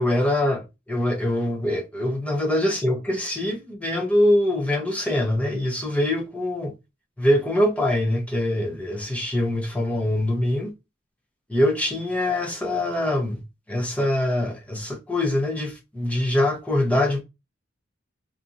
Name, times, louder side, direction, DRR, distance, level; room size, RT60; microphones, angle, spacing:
voice 1, 0.0-6.7 7.2-10.7 11.5-13.4 13.7-17.2, left 1 dB, 5° left, 0.7 m, -23 dB
2.7 x 2.5 x 2.4 m
head